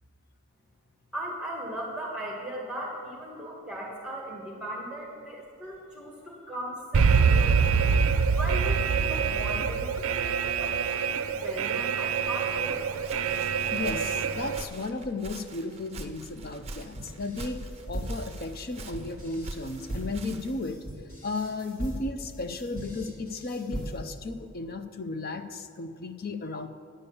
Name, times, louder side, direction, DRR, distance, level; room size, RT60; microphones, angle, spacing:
voice 1, 1.1-8.0 8.3-12.8, right 1 dB, 5° right, -3 dB, 1.4 m, -38 dB
Alarm, 6.9-14.6, right 6 dB, 70° right, 0.4 m, -25 dB
Walk footsteps, 12.7-20.6, right 2 dB, 30° right, 0.6 m, -44 dB
voice 2, 13.7-17.6 17.9-20.8 21.2-26.7, left 3 dB, 45° left, 8 dB, 0.5 m, -34 dB
sound 1, 16.9-24.2, right 1 dB, 65° left, 2.6 m, -38 dB
10.0 x 6.9 x 7.0 m, 2.5 s
head